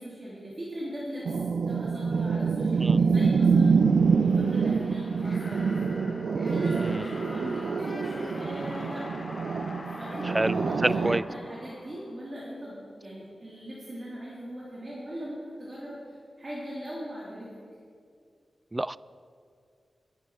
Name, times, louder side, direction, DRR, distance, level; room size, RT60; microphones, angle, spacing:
voice 1, 0.0-1.4 1.6-3.8 4.2-5.8 6.5-9.1 9.9-17.6, equal, 35° right, -7 dB, 3.3 m, -40 dB
sound 1, 1.3-11.2, right 5 dB, 80° right, 0.6 m, -26 dB
sound 2, 3.6-12.5, left 2 dB, 35° left, 1.9 m, -43 dB
voice 2, 10.2-11.2 18.7-19.0, right 1 dB, 20° right, 19 dB, 0.3 m, -28 dB
21.5 x 9.9 x 4.8 m, 2.3 s
wide cardioid pair, 85°, 0 cm